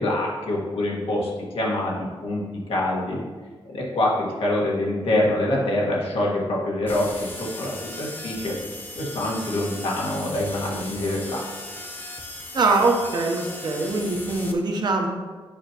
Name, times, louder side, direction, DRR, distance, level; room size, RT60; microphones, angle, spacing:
voice 1, 0.0-1.9 2.2-2.4 2.7-3.2 3.7-8.5 8.9-11.4, left 1 dB, 85° left, -4 dB, 1.6 m, -25 dB
sound 1, 6.9-14.5, left 1 dB, 20° left, 0.7 m, -37 dB
voice 2, 12.5-15.1, right 3 dB, 50° right, 2 dB, 0.9 m, -22 dB
8.7 x 5.6 x 2.9 m, 1.4 s
wide cardioid pair, 150°, 9 cm